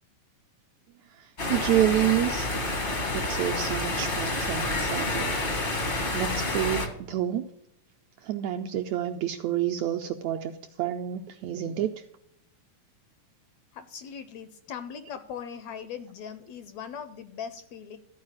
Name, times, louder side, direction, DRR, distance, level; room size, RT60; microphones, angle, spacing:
sound 1, 1.4-6.9, left 2 dB, 55° left, 0.6 m, -29 dB
voice 1, 1.5-2.5 3.1-5.7 6.1-6.8 7.1-7.4 8.2-10.5 10.8-11.9, right 12 dB, 85° right, 4 dB, 1.6 m, -28 dB
voice 2, 13.7-18.0, left 7 dB, 75° left, 10 dB, 1.6 m, -40 dB
14.0 x 4.7 x 8.6 m, 0.77 s
omnidirectional pair, 3.7 m